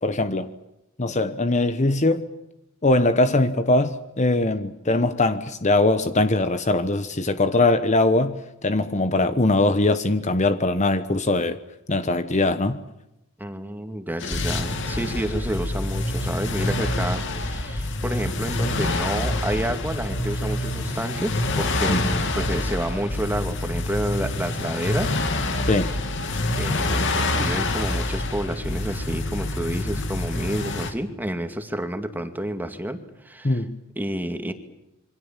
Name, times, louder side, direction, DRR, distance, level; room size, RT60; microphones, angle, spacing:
voice 1, 0.0-0.5 1.0-2.2 2.8-11.6 11.9-12.8 21.9-22.0 25.7-25.9 33.4-33.8, left 2 dB, 35° left, 10 dB, 1.2 m, -21 dB
voice 2, 13.4-25.2 26.6-33.6 34.0-34.5, right 1 dB, 10° right, 7 dB, 2.3 m, -30 dB
sound 1, 14.2-30.9, left 2 dB, 65° left, 3.0 m, -26 dB
27.5 x 24.5 x 7.5 m, 0.88 s
head